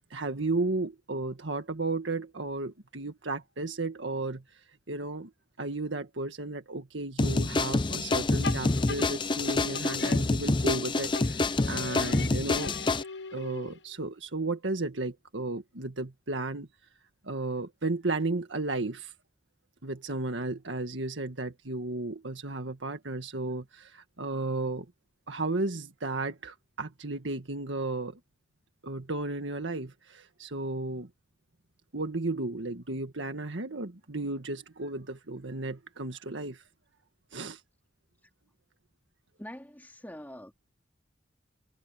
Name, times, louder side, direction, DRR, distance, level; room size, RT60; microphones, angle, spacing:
voice 1, 0.1-4.4 4.9-5.3 5.6-12.7 13.3-16.7 17.2-19.1 19.8-24.9 25.3-28.2 28.8-31.1 31.9-36.6 37.3-37.6, right 2 dB, 85° right, 1.7 m, -34 dB
sound 1, 7.2-13.0, left 2 dB, 25° left, 0.6 m, -27 dB
sound 2, 8.4-10.8 11.1-14.0, left 5 dB, 70° left, 1.0 m, -41 dB
voice 2, 39.4-40.7, equal, 10° left, 3.3 m, -45 dB
head